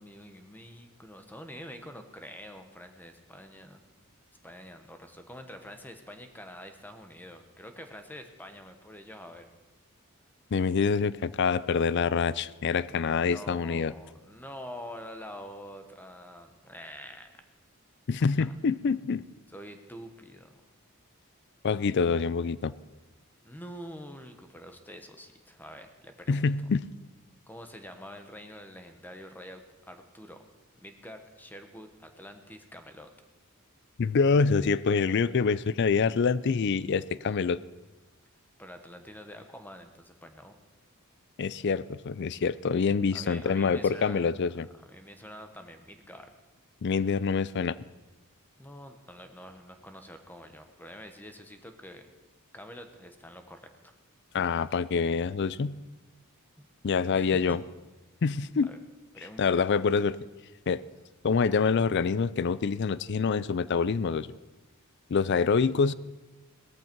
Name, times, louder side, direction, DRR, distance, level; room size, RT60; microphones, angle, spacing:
voice 1, 0.0-3.8 4.4-9.5 13.1-17.3 18.2-18.5 19.5-20.6 23.4-26.5 27.5-30.4 30.8-33.1 38.6-40.6 43.1-44.3 44.9-46.3 48.6-52.0 52.5-53.7 56.6-56.7 57.1-57.6 58.7-58.8 59.1-60.1, equal, 10° left, 7 dB, 1.1 m, -46 dB
voice 2, 10.5-13.9 18.1-19.2 21.6-22.7 26.3-26.9 34.0-37.6 41.4-44.7 46.8-47.8 54.3-55.8 56.8-57.6 58.2-58.7 59.4-60.2 60.7-60.8 61.2-64.3 65.1-65.9, left 5 dB, 55° left, 19 dB, 0.4 m, -26 dB
18.0 x 14.0 x 4.6 m, 1.1 s
head